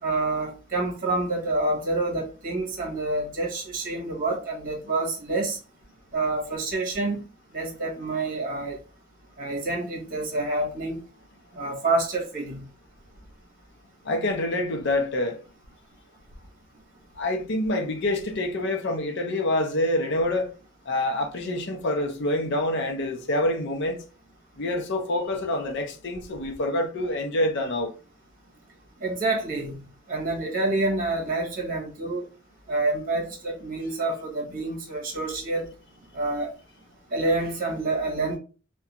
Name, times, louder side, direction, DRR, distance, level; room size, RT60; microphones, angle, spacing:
voice 1, 0.0-5.6 6.1-7.2 7.5-8.8 9.4-11.0 11.5-12.6 29.0-29.8 30.1-32.3 32.7-35.7 36.1-36.5 37.1-38.4, right 2 dB, 45° right, 0.9 m, -27 dB
voice 2, 14.0-15.4 17.2-20.5 20.9-24.0 24.6-27.9, left 1 dB, 60° left, 0.6 m, -26 dB
2.3 x 2.2 x 2.8 m
head